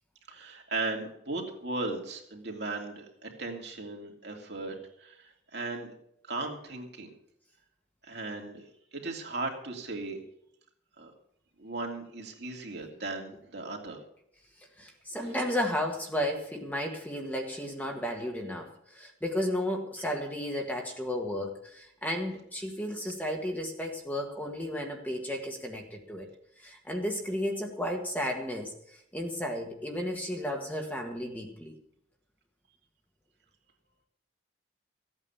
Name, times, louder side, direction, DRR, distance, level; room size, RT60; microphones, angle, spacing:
voice 1, 0.3-5.9 6.3-7.1 8.0-8.7 8.9-10.2 11.0-11.1 11.6-14.0, right 3 dB, 60° right, 1 dB, 2.8 m, -37 dB
voice 2, 14.8-26.3 26.6-31.7, left 1 dB, 10° left, 2 dB, 1.6 m, -33 dB
15.0 x 8.9 x 7.1 m, 0.74 s
head